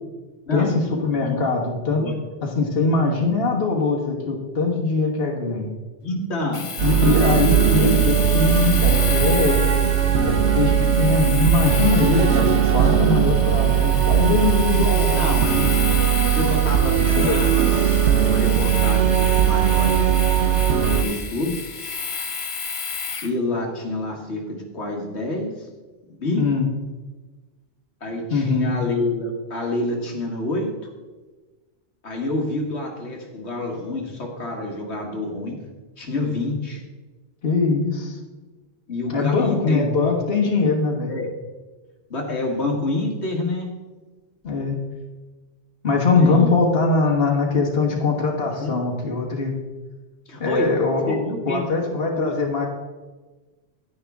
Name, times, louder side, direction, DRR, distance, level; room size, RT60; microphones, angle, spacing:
voice 1, 0.5-2.0 2.4-5.7 6.8-9.7 10.2-15.3 17.1-17.5 26.4-26.7 28.3-28.7 37.4-38.2 39.1-41.1 44.4-44.8 45.8-49.5 50.4-51.2 51.4-52.7, left 4 dB, 60° left, -1 dB, 1.6 m, -22 dB
voice 2, 6.0-6.8 14.9-15.7 16.2-20.2 20.7-21.6 23.2-25.7 26.2-26.5 28.0-30.7 32.0-35.6 36.0-36.8 38.9-39.9 41.1-41.3 42.1-43.7 46.2-46.6 48.5-48.7 50.3-50.8 51.1-51.6 52.1-52.4, left 2 dB, 75° left, 1 dB, 1.8 m, -28 dB
Domestic sounds home sounds, 6.5-23.3, left 5 dB, 35° left, 0.6 m, -31 dB
sound 1, 6.8-21.0, right 10 dB, 90° right, 1.0 m, -19 dB
10.5 x 10.0 x 3.5 m, 1.3 s
omnidirectional pair, 1.1 m